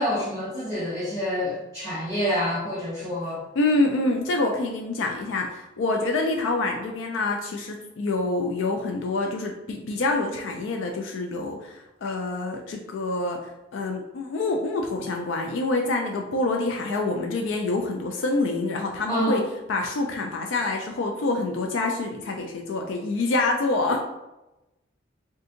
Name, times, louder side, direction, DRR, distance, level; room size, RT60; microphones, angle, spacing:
voice 1, 0.0-3.4 19.1-19.4, equal, 10° left, -12 dB, 1.1 m, -27 dB
voice 2, 3.6-19.4 19.7-24.0, left 2 dB, 75° left, 2 dB, 0.3 m, -26 dB
2.6 x 2.5 x 3.7 m, 0.98 s
head